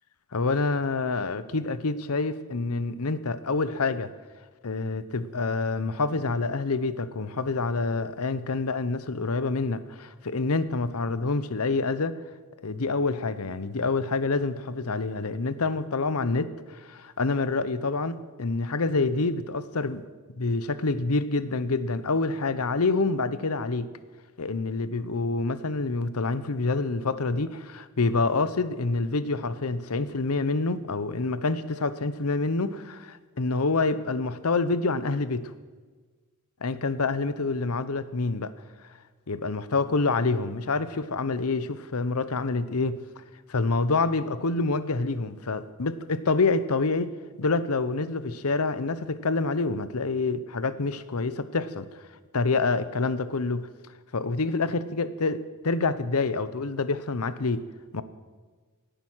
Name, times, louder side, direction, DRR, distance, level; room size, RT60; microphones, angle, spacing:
voice 1, 0.3-4.1 4.6-12.2 12.6-20.0 20.4-23.9 24.4-35.5 36.6-38.5 39.3-43.0 43.5-47.1 47.4-51.9 52.3-53.7 54.1-57.6 57.9-58.0, left 3 dB, 80° left, 14 dB, 0.9 m, -27 dB
17.5 x 10.5 x 6.3 m, 1.4 s
head